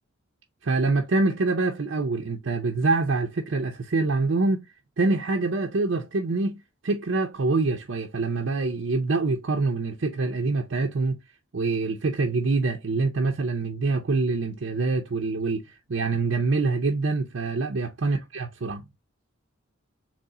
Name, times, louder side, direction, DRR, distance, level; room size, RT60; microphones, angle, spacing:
voice 1, 0.6-4.7 5.0-6.6 6.8-11.2 11.5-15.6 15.9-18.8, right 3 dB, 65° right, 0.6 m, -25 dB
4.1 x 3.0 x 3.8 m
head